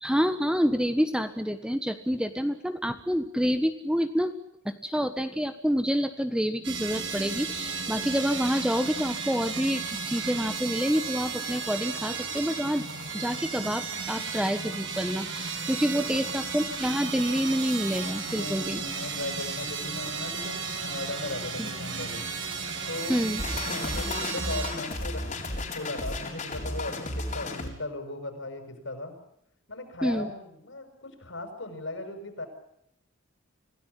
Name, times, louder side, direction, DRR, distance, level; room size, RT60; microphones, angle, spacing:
voice 1, 0.0-4.3 4.6-18.8 21.6-21.7 23.1-23.4 30.0-30.3, equal, 5° right, 9 dB, 1.2 m, -28 dB
sound 1, 6.6-24.7, right 5 dB, 65° right, 7.4 m, -34 dB
voice 2, 15.9-16.4 18.2-22.2 22.9-23.2 23.7-29.2 29.7-32.5, left 2 dB, 70° left, 7 dB, 6.6 m, -38 dB
sound 2, 23.4-27.7, left 2 dB, 40° left, 4.4 m, -33 dB
27.0 x 17.0 x 9.9 m, 0.75 s
head